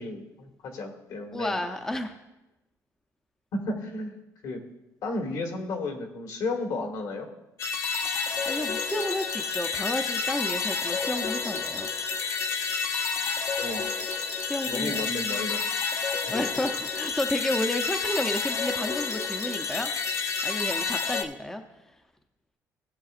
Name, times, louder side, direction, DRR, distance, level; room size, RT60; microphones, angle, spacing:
voice 1, 0.0-1.6 3.5-4.2 4.4-4.6 5.0-7.3 13.6-13.9 14.6-15.6, left 2 dB, 65° left, 2 dB, 1.7 m, -33 dB
voice 2, 1.3-2.2 8.4-11.9 14.4-15.0 16.3-19.9 20.4-21.6, left 1 dB, 5° left, 6 dB, 0.5 m, -31 dB
sound 1, 7.6-21.2, left 5 dB, 45° left, 0.7 m, -30 dB
17.0 x 6.9 x 2.5 m, 0.97 s
cardioid pair, 145°, 7 cm